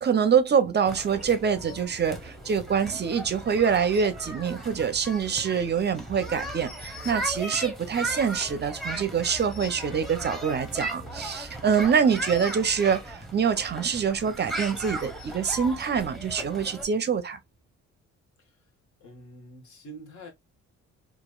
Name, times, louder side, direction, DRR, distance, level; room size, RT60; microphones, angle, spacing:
voice 1, 0.0-17.4, right 6 dB, 35° right, 0.5 m, -25 dB
sound 1, 0.9-16.9, right 1 dB, ahead, 0.7 m, -37 dB
voice 2, 19.0-20.3, right 1 dB, 70° left, 1.2 m, -45 dB
3.0 x 2.4 x 2.2 m
cardioid pair, 90°, 30 cm